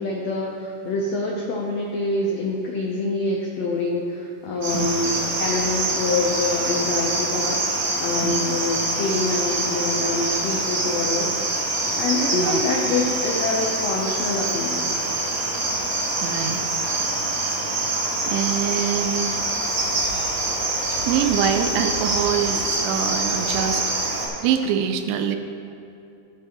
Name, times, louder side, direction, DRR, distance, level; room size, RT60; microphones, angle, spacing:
voice 1, 0.0-11.6 11.9-14.8, left 3 dB, 80° left, -1 dB, 1.5 m, -26 dB
Cricket, 4.6-24.3, right 2 dB, 55° right, 3.7 m, -25 dB
voice 2, 12.3-12.6 15.4-15.5 16.2-16.6 18.2-19.5 20.7-25.4, right 8 dB, 80° right, 7 dB, 2.4 m, -25 dB
15.0 x 8.7 x 3.0 m, 2.7 s
omnidirectional pair, 4.3 m